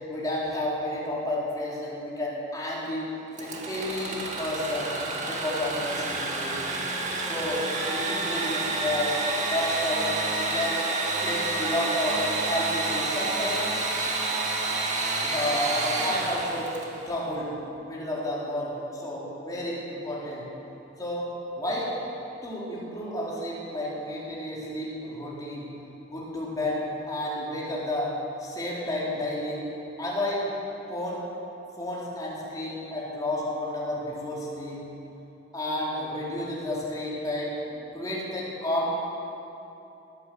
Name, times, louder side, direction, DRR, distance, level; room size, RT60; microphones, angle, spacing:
voice 1, 0.1-3.0 3.4-4.9 5.3-6.6 7.2-9.2 9.5-10.1 10.4-10.8 11.2-12.2 12.5-13.7 15.2-17.5 17.8-20.4 21.0-21.3 21.6-21.9 22.4-25.6 26.1-26.8 27.1-28.1 28.4-29.7 30.0-30.5 30.9-31.2 31.8-34.8 35.5-38.9, left 1 dB, 20° left, -6 dB, 4.0 m, -31 dB
Engine / Sawing, 3.3-17.1, right 3 dB, 35° right, 1.9 m, -29 dB
19.5 x 9.3 x 7.8 m, 2.9 s
head